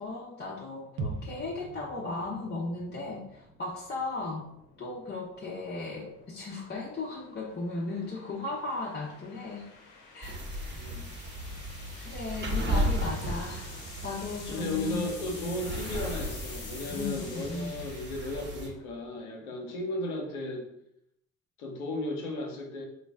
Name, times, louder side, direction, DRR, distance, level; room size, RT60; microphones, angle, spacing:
voice 1, 0.0-4.5 4.8-9.6 10.1-11.0 11.5-11.6 12.0-13.7 14.0-15.5 16.9-17.8, left 3 dB, 25° left, -5 dB, 0.7 m, -36 dB
sound 1, 1.0-4.9 5.2-5.3, right 3 dB, 60° right, 0.6 m, -42 dB
sound 2, 3.1-19.3, left 4 dB, 60° left, 0.9 m, -50 dB
sound 3, 10.2-18.7, equal, 25° right, 1.0 m, -35 dB
voice 2, 10.8-11.1 14.5-20.7 21.6-22.9, left 1 dB, 85° left, 1 dB, 0.7 m, -35 dB
3.9 x 2.1 x 3.3 m, 0.78 s
hypercardioid pair, 45°, 42 cm